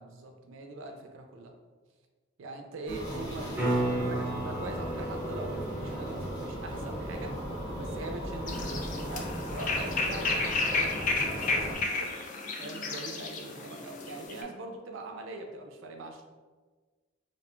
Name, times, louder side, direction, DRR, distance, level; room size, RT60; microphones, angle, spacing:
voice 1, 0.0-1.5 2.4-7.4 7.8-12.1 12.6-16.2, right 2 dB, 80° right, 4 dB, 0.4 m, -42 dB
sound 1, 2.9-11.7, equal, 85° left, 1.1 m, -37 dB
sound 2, 3.5-9.6 14.3-14.4, right 1 dB, 10° right, 0.7 m, -36 dB
sound 3, 8.5-14.4, left 3 dB, 40° left, 0.3 m, -32 dB
2.6 x 2.1 x 2.9 m, 1.4 s
head